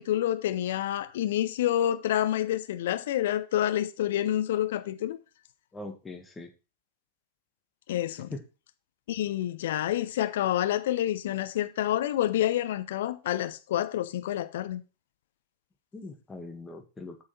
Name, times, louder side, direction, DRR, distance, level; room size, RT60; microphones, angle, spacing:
voice 1, 0.0-5.2 7.9-8.3 9.1-14.8, left 12 dB, 55° left, 0.8 m, -28 dB
voice 2, 5.7-6.5 8.3-8.4 15.9-17.2, left 3 dB, 15° left, 1.8 m, -41 dB
8.2 x 6.5 x 4.3 m
figure-of-eight pair, 90°, 0 cm